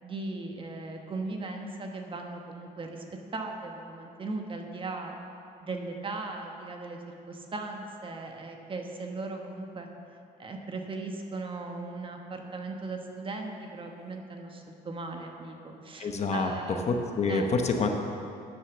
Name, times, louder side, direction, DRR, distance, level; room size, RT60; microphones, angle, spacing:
voice 1, 0.0-3.0 3.3-5.2 5.6-7.0 7.3-9.9 10.4-16.9 17.3-17.5, right 3 dB, 30° right, 3 dB, 1.2 m, -38 dB
voice 2, 16.0-16.5 16.9-17.9, left 4 dB, 40° left, 4 dB, 1.0 m, -27 dB
9.6 x 6.8 x 7.0 m, 2.7 s
cardioid pair, 110°, 17 cm